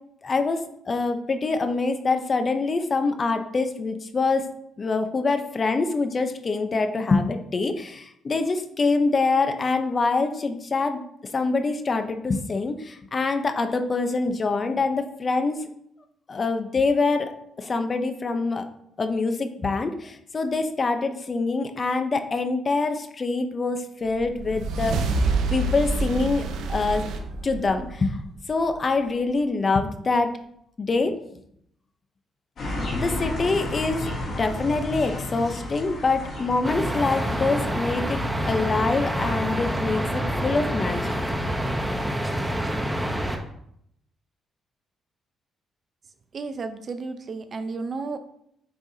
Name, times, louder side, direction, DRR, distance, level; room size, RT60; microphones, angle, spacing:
voice 1, 0.2-4.5 4.8-11.0 11.3-15.7 16.3-18.6 19.0-27.1 27.4-28.2 28.5-30.3 30.8-31.2 32.9-41.2, left 3 dB, 35° left, 7 dB, 0.7 m, -25 dB
sound 1, 24.1-28.7, right 3 dB, 85° right, 0.8 m, -27 dB
sound 2, 32.6-38.8, left 1 dB, 55° left, 2.7 m, -33 dB
sound 3, 36.6-43.4, equal, 10° right, 0.9 m, -27 dB
voice 2, 46.3-48.2, right 4 dB, 45° right, 9 dB, 0.6 m, -32 dB
8.8 x 4.6 x 2.8 m, 0.72 s
cardioid pair, 90°, 0 cm